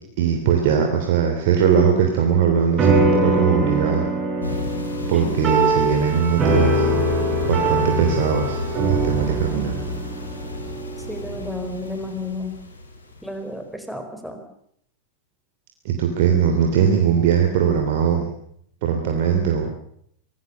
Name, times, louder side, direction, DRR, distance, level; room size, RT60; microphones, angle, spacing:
voice 1, 0.2-4.1 5.1-6.9 7.4-9.8 15.8-18.3 18.8-19.8, right 7 dB, 50° right, 3 dB, 3.3 m, -20 dB
sound 1, 2.8-11.5, right 2 dB, 25° right, 7.4 m, -22 dB
sound 2, 4.4-13.5, left 3 dB, 75° left, 4.9 m, -33 dB
voice 2, 11.0-12.6 13.2-14.4, left 2 dB, ahead, 6 dB, 4.5 m, -32 dB
25.0 x 19.5 x 6.9 m, 0.68 s
figure-of-eight pair, 90°, 0 cm